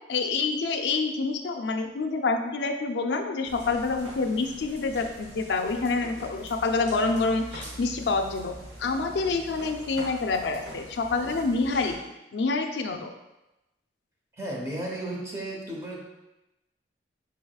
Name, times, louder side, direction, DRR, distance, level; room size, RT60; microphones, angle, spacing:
voice 1, 0.1-12.0 12.3-13.1, left 3 dB, 80° left, 6 dB, 0.4 m, -27 dB
sound 1, 3.4-11.9, right 1 dB, 90° right, 1.1 m, -43 dB
voice 2, 14.4-16.0, right 1 dB, 15° right, -2 dB, 0.8 m, -34 dB
4.7 x 4.2 x 2.3 m, 0.97 s
head